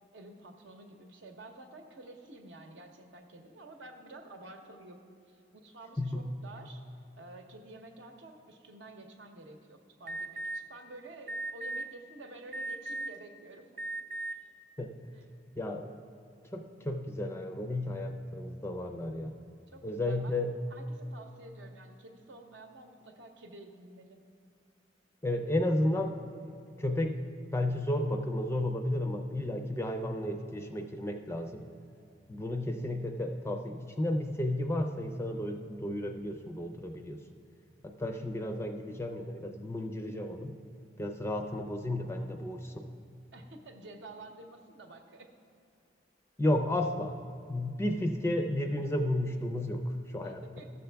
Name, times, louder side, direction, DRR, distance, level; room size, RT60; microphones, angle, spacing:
voice 1, 0.1-5.0 5.3-6.8 7.1-13.7 15.1-15.3 19.7-20.4 20.7-24.2 43.3-45.3 50.2-50.7, right 2 dB, 70° right, 5 dB, 0.8 m, -50 dB
Alarm, 10.1-10.6 11.3-11.8 12.5-13.2 13.7-14.3, right 2 dB, 40° right, 0.6 m, -36 dB
voice 2, 15.6-15.9 16.5-19.3 19.8-20.5 25.2-26.5 26.8-27.2 27.5-31.7 32.3-37.2 37.8-40.5 41.0-42.9 46.4-47.2 47.5-50.4, left 1 dB, 15° left, 4 dB, 0.4 m, -32 dB
13.5 x 6.7 x 3.4 m, 2.6 s
head